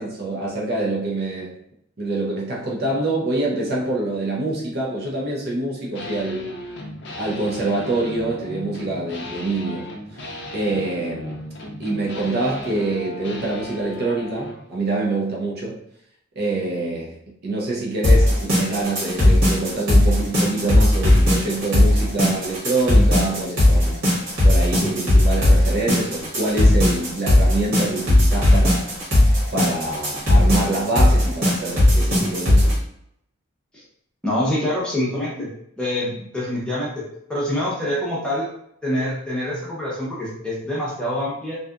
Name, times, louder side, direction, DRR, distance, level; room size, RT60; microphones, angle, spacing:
voice 1, 0.0-1.6 2.0-6.5 7.2-10.2 10.5-11.3 11.8-15.8 16.4-24.0 24.4-28.9 29.5-32.8, right 2 dB, 45° right, -3 dB, 0.5 m, -25 dB
sound 1, 5.9-14.6, left 1 dB, 55° left, 0.5 m, -35 dB
sound 2, 18.0-32.7, left 1 dB, 60° right, 1.3 m, -17 dB
voice 2, 34.2-37.0 37.3-38.5 38.8-41.6, left 1 dB, 5° left, -7 dB, 0.7 m, -25 dB
2.7 x 2.3 x 2.4 m, 0.73 s
head